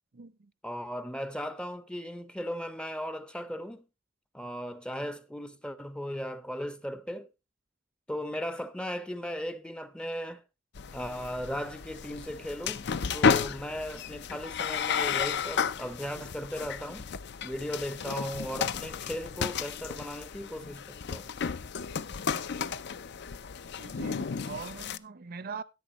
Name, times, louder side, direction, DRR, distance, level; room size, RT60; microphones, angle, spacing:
voice 1, 0.6-3.8 4.3-7.3 8.1-10.4 10.9-12.9 13.1-17.1 17.4-21.3, equal, 5° left, 0.6 m, -37 dB
sound 1, 10.8-25.0, left 6 dB, 60° left, 0.5 m, -33 dB
voice 2, 23.8-25.6, right 5 dB, 50° right, 0.6 m, -41 dB
13.0 x 11.0 x 3.0 m
head